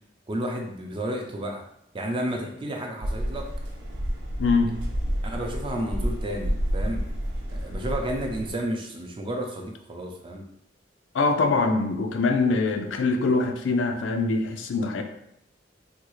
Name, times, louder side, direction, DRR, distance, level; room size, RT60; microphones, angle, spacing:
voice 1, 0.3-1.6 1.9-3.5 5.2-7.0 7.5-10.4, right 1 dB, 25° right, 2 dB, 0.4 m, -31 dB
sound 1, 3.0-8.5, equal, 90° right, 0.7 m, -30 dB
voice 2, 4.4-4.7 11.1-15.0, left 3 dB, 90° left, 5 dB, 0.4 m, -23 dB
3.6 x 2.3 x 3.1 m, 0.75 s
head